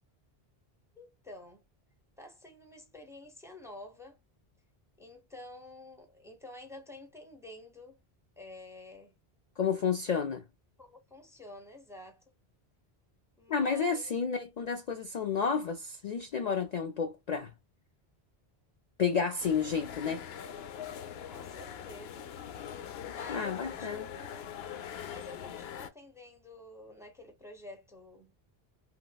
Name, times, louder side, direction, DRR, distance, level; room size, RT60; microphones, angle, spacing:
voice 1, 1.0-1.6 2.2-4.2 5.0-8.0 8.4-9.1 10.8-12.2 13.4-14.1 21.3-22.3 23.0-28.4, left 2 dB, 5° right, 0.8 m, -50 dB
voice 2, 9.6-10.4 13.5-17.5 19.0-20.2 23.3-24.1, left 6 dB, 50° left, 0.5 m, -31 dB
sound 1, 19.4-25.9, left 9 dB, 75° left, 0.8 m, -42 dB
3.0 x 2.9 x 2.3 m
omnidirectional pair, 1.1 m